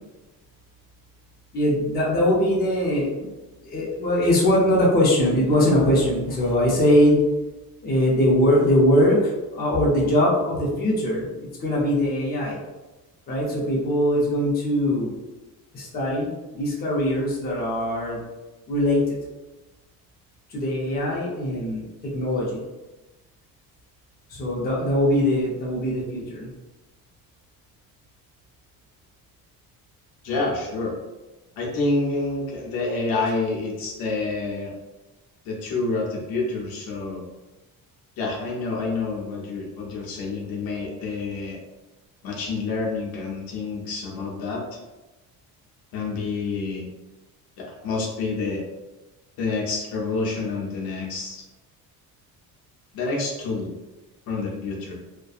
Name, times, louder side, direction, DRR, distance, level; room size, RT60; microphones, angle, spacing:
voice 1, 1.5-3.3 3.6-7.2 7.8-12.6 13.3-15.1 15.7-18.2 18.7-19.2 20.5-22.6 24.3-26.5, left 1 dB, 25° left, -4 dB, 0.6 m, -21 dB
voice 2, 30.2-30.9 31.6-34.7 35.4-37.3 38.2-41.6 42.2-44.6 45.9-46.9 47.6-48.6 49.4-51.4 52.9-53.7 54.3-55.0, left 3 dB, 80° left, -2 dB, 0.8 m, -28 dB
2.6 x 2.2 x 2.4 m, 1.1 s
cardioid pair, 160°, 35 cm